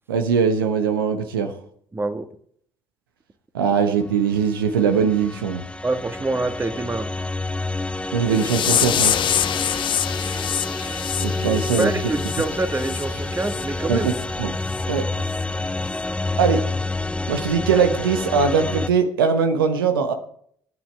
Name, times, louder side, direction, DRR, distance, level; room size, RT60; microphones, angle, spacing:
voice 1, 0.1-1.5 3.5-5.6 8.1-9.2 11.2-11.9 13.9-14.1 14.4-14.5 14.9-15.1 16.4-16.6 17.3-20.1, right 6 dB, 80° right, 7 dB, 1.1 m, -21 dB
voice 2, 1.9-2.3 5.8-7.1 11.8-14.1, right 2 dB, 20° right, 9 dB, 1.5 m, -25 dB
sound 1, 4.5-18.9, left 2 dB, 10° left, 0.7 m, -28 dB
sound 2, 8.3-13.0 13.4-13.6 14.1-14.2 14.7-14.8 15.3-15.4, left 10 dB, 45° left, 0.6 m, -25 dB
25.0 x 9.5 x 3.3 m, 0.63 s
figure-of-eight pair, 50°, 11 cm